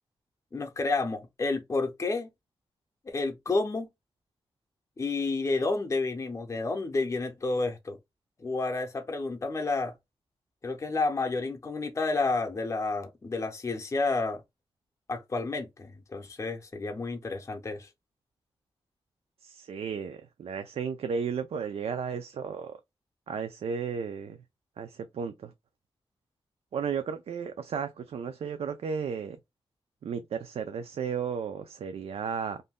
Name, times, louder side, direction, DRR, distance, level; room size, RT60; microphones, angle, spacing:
voice 1, 0.5-2.3 3.1-3.9 5.0-8.0 8.4-9.9 10.6-14.4 15.1-17.9, left 3 dB, 30° left, 0.5 m, -30 dB
voice 2, 19.4-22.8 23.3-24.4 24.8-25.5 26.7-29.4 30.0-32.6, right 6 dB, 90° right, 0.4 m, -34 dB
2.6 x 2.2 x 3.4 m
wide cardioid pair, 155°, 10 cm